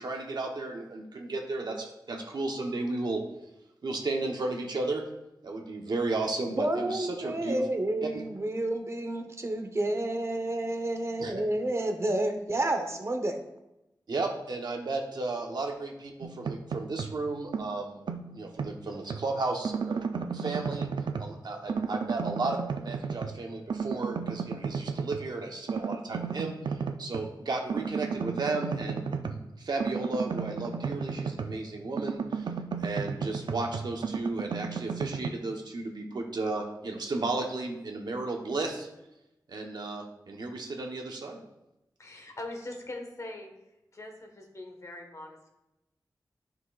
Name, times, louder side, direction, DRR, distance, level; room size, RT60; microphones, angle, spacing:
voice 1, 0.0-3.2 3.8-5.0 5.4-7.7 8.0-8.2 11.2-11.3 14.1-18.0 18.3-20.0 20.3-20.9 21.2-32.5 32.8-38.9 39.5-41.4, right 3 dB, 70° right, 1 dB, 1.0 m, -34 dB
voice 2, 6.5-13.4, right 1 dB, 40° right, 6 dB, 0.9 m, -30 dB
sound 1, 16.2-17.2 17.5-19.3 19.6-21.4 21.7-23.4 23.7-25.3 25.7-27.3 27.7-31.7 32.0-35.3, right 5 dB, 90° right, 0.4 m, -34 dB
voice 3, 42.0-43.5 43.9-45.5, left 2 dB, 45° left, 2 dB, 1.4 m, -41 dB
10.0 x 6.0 x 2.4 m, 0.92 s
wide cardioid pair, 80°, 7 cm